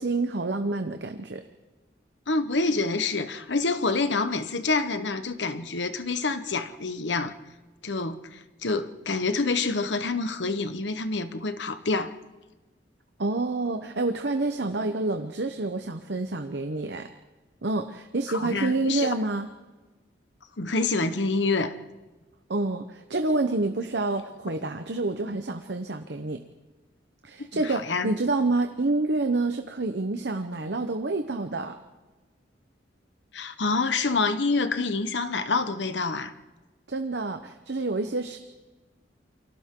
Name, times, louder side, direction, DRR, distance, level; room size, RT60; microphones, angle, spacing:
voice 1, 0.0-1.4 13.2-17.1 17.6-19.5 22.5-26.4 27.2-31.7 36.9-38.4, right 2 dB, 70° right, 1.0 m, -28 dB
voice 2, 2.3-7.3 7.8-12.1 18.3-19.1 20.6-21.8 27.4-28.1 33.3-36.3, left 3 dB, 80° left, 1.2 m, -27 dB
29.0 x 24.0 x 3.8 m
head